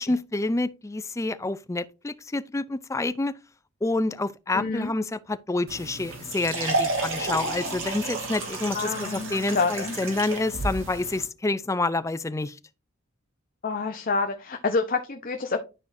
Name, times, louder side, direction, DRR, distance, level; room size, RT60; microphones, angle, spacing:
voice 1, 0.0-3.3 3.8-12.6, left 2 dB, 15° left, 0.4 m, -28 dB
voice 2, 4.5-4.9 8.7-10.0 13.6-15.6, left 4 dB, 45° left, 0.7 m, -27 dB
sound 1, 5.7-11.3, right 2 dB, 80° right, 2.7 m, -31 dB
12.0 x 4.8 x 2.6 m
head